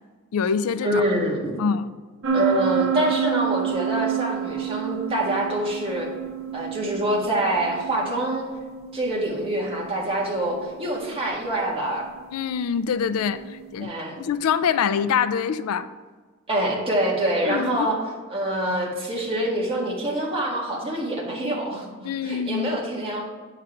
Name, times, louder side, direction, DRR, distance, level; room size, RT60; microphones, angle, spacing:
voice 1, 0.3-1.0 1.6-1.9 12.3-13.9 14.2-15.9 17.4-17.9 22.0-22.8, left 7 dB, 75° left, 13 dB, 0.4 m, -25 dB
voice 2, 0.8-1.6 2.3-6.1 6.5-8.5 8.9-12.1 13.8-14.2 16.5-18.0 18.3-23.3, right 1 dB, 25° right, -3 dB, 1.7 m, -25 dB
sound 1, 2.2-13.7, right 9 dB, 65° right, 0.7 m, -30 dB
8.9 x 4.9 x 4.5 m, 1.5 s
head